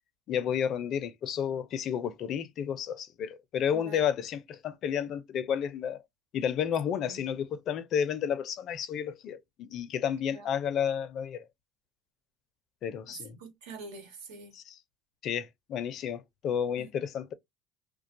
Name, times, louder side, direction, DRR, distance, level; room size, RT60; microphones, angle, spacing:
voice 1, 0.3-6.0 6.3-11.4 12.8-13.4 14.5-14.8 15.2-17.3, left 8 dB, 50° left, 0.4 m, -31 dB
voice 2, 3.7-4.0 7.0-7.2 10.3-10.4 13.4-14.5 16.8-16.9, right 3 dB, 90° right, 1.2 m, -45 dB
2.3 x 2.2 x 2.5 m
supercardioid pair, 105°, 0 cm